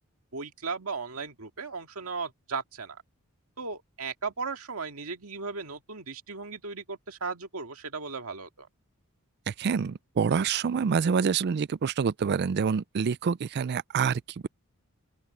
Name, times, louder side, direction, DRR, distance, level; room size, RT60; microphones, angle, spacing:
voice 1, 0.3-3.0 3.6-8.7, right 4 dB, 75° right, 2.1 m, -36 dB
voice 2, 9.5-14.5, right 6 dB, 50° right, 0.4 m, -27 dB
open air
head